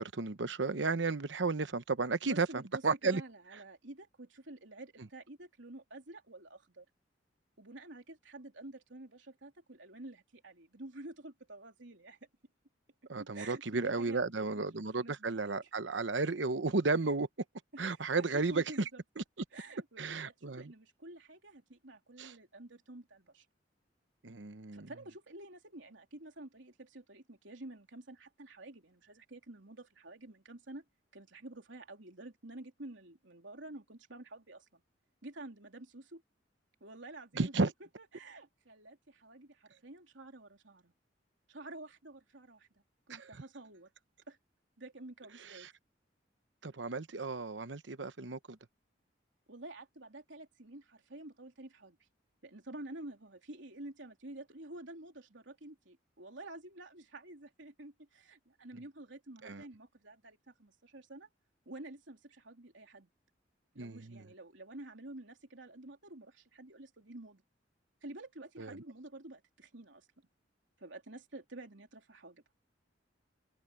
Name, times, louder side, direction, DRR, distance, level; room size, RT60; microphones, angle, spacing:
voice 1, 0.0-3.2 13.1-17.3 17.8-18.6 19.2-19.3 20.0-20.7 22.2-22.3 24.2-24.9 37.4-37.7 43.1-43.3 45.5-45.7 46.6-48.6 59.4-59.6 63.8-64.2 68.6-68.7, right 3 dB, 70° right, 1.0 m, -33 dB
voice 2, 2.2-6.8 7.6-12.2 13.2-15.5 17.7-19.0 19.5-23.4 24.7-30.8 31.1-34.8 35.2-36.2 36.8-37.5 38.0-40.9 41.5-43.9 44.3-44.4 44.8-45.7 49.5-52.0 52.4-61.3 61.6-63.1 63.7-67.4 68.0-70.1 70.8-72.4, right 2 dB, 90° right, 3.4 m, -50 dB
open air
head